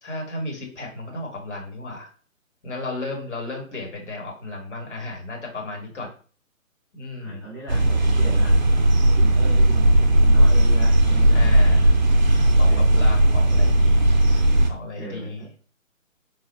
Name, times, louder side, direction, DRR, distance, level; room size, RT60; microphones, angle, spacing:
voice 1, 0.0-2.1 2.6-6.1 6.9-7.5 11.3-11.9 12.6-14.1 14.7-15.4, left 2 dB, 55° left, -1 dB, 1.7 m, -34 dB
voice 2, 7.2-8.6 9.0-11.7 12.6-12.9 15.0-15.5, right 2 dB, 10° left, -8 dB, 0.8 m, -38 dB
sound 1, 7.7-14.7, right 1 dB, 35° right, 0.4 m, -17 dB
4.0 x 2.2 x 4.1 m, 0.40 s
figure-of-eight pair, 140°, 41 cm